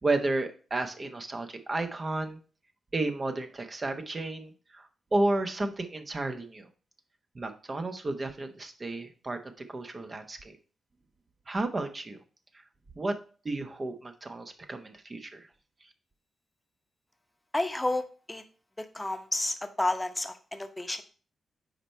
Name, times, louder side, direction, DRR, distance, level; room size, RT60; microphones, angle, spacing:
voice 1, 0.0-2.4 2.9-6.7 7.3-10.6 11.5-12.2 13.0-13.2 13.4-15.4, right 2 dB, 40° right, 7 dB, 0.9 m, -32 dB
voice 2, 17.5-18.4 18.8-21.0, left 2 dB, 15° left, 8 dB, 0.8 m, -31 dB
4.9 x 4.4 x 4.4 m, 0.38 s
supercardioid pair, 45°, 0 cm